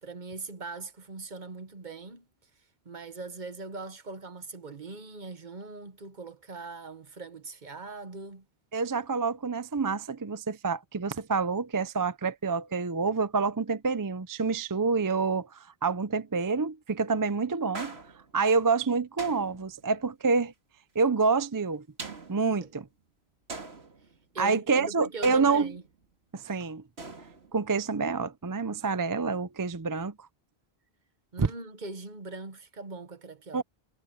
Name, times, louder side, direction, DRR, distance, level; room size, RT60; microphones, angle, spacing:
voice 1, 0.0-2.3 2.8-8.4 22.6-22.7 24.3-25.8 31.3-33.6, right 3 dB, 45° right, 1.3 m, -41 dB
voice 2, 8.7-18.0 18.3-20.5 21.0-21.8 22.3-22.8 24.4-25.7 26.3-26.8 27.5-30.1 31.4-31.5 33.5-33.6, right 4 dB, 30° right, 0.4 m, -27 dB
sound 1, 17.7-18.5 19.2-20.0 22.0-22.8 23.5-24.3 25.2-26.0 27.0-27.8, right 3 dB, 85° right, 2.3 m, -43 dB
omnidirectional pair, 1.1 m